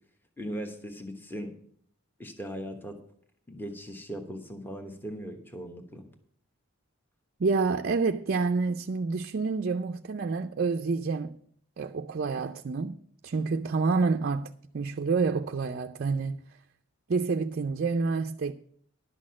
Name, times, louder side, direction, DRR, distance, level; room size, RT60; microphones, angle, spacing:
voice 1, 0.4-1.6 2.2-3.0 3.5-6.1, equal, 10° left, 1.1 m, -39 dB
voice 2, 7.4-11.4 11.8-13.0 13.2-16.4 17.1-18.5, right 4 dB, 45° right, 0.4 m, -28 dB
11.0 x 6.3 x 7.5 m
head